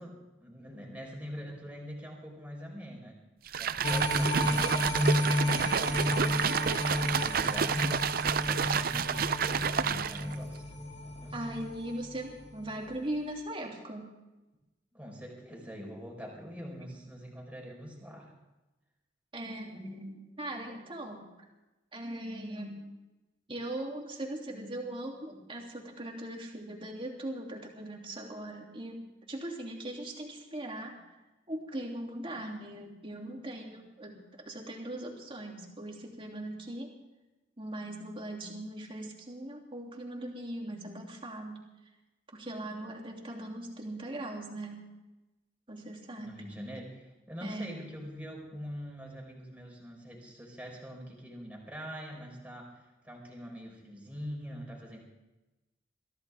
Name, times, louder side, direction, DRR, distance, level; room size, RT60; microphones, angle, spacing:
voice 1, 0.0-3.2 3.6-10.6 11.0-11.6 14.9-18.3 46.2-55.0, equal, 10° right, -1 dB, 4.6 m, -44 dB
sound 1, 3.5-10.4, right 7 dB, 55° right, 0.5 m, -29 dB
sound 2, 3.8-12.2 12.6-12.7, left 1 dB, 40° left, 2.3 m, -32 dB
voice 2, 11.3-14.1 19.3-21.3 21.9-22.9 23.5-31.0 31.5-36.9 37.6-41.6 42.3-44.9 45.7-46.5 47.4-47.9, right 1 dB, 30° right, 0 dB, 3.0 m, -40 dB
23.5 x 15.5 x 3.6 m, 1.0 s
head